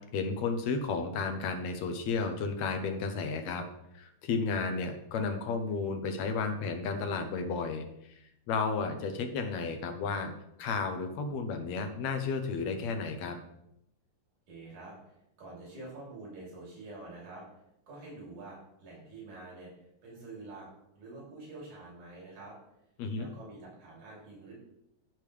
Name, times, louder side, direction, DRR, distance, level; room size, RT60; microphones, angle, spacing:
voice 1, 0.1-3.6 3.9-7.9 8.5-10.3 10.6-13.4 23.0-23.3, left 4 dB, 70° left, 6 dB, 2.1 m, -32 dB
voice 2, 14.5-17.4 17.9-19.7 20.0-20.7 20.9-22.6 23.1-24.5, right 2 dB, 70° right, -4 dB, 4.4 m, -47 dB
14.0 x 5.2 x 3.3 m, 0.81 s
omnidirectional pair, 3.5 m